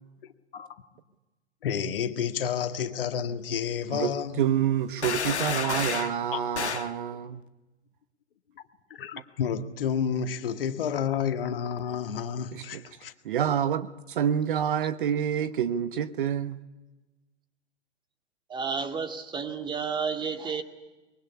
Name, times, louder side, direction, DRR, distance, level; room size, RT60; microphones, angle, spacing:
voice 1, 1.6-4.4 6.3-6.5 8.9-13.1, left 7 dB, 50° left, 1.9 m, -30 dB
voice 2, 3.9-7.4 12.5-12.8 13.2-16.6, right 9 dB, 45° right, 1.1 m, -28 dB
sound 1, 5.0-6.2 6.5-6.9, left 6 dB, 70° left, 1.3 m, -30 dB
voice 3, 18.5-20.6, right 5 dB, 15° right, 2.1 m, -31 dB
24.5 x 23.0 x 9.8 m
figure-of-eight pair, 110°, 35 cm